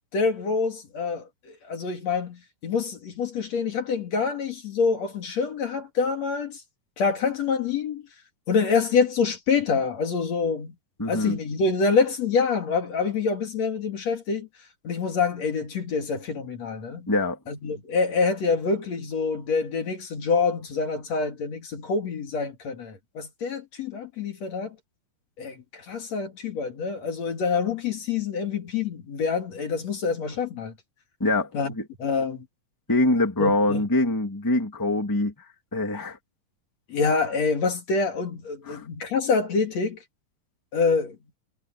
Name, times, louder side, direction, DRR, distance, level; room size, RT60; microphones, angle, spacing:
voice 1, 0.1-6.6 7.0-8.1 8.5-10.7 11.1-14.5 14.8-17.1 17.5-24.8 25.4-30.7 31.5-31.7 32.0-32.5 33.4-33.9 36.9-40.0 40.7-41.2, left 5 dB, 50° left, 3.4 m, -26 dB
voice 2, 11.0-11.4 17.1-17.4 31.2-31.5 31.8-31.9 32.9-35.3 35.7-36.2 38.7-38.8, left 2 dB, 5° left, 2.2 m, -24 dB
omnidirectional pair, 4.0 m